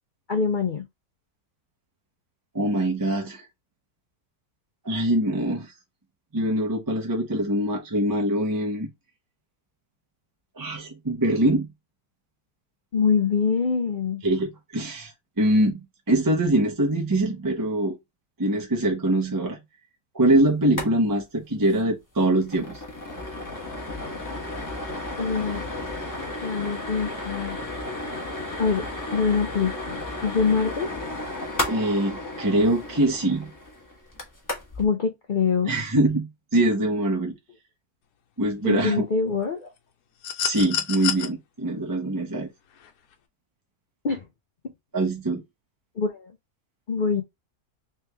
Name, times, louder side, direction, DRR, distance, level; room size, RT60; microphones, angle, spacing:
voice 1, 0.3-0.8 12.9-14.2 25.2-25.6 26.4-27.6 28.6-28.8 29.1-30.9 34.8-35.7 38.6-39.7 44.0-44.2 46.0-46.3 46.9-47.2, left 5 dB, 55° left, 0.5 m, -24 dB
voice 2, 2.5-3.5 4.8-5.7 6.3-8.9 10.6-11.7 14.2-18.0 18.4-19.6 20.1-22.8 31.7-33.5 35.7-37.3 38.4-39.2 40.4-42.5 44.9-45.4, right 1 dB, 20° right, 0.5 m, -23 dB
sound 1, 20.6-20.9 21.2-21.3 21.6-21.8 22.2-34.9, left 2 dB, 15° left, 0.9 m, -33 dB
sound 2, 40.2-41.3 42.8-42.9, left 10 dB, 85° left, 1.2 m, -28 dB
3.4 x 3.1 x 3.3 m
omnidirectional pair, 1.6 m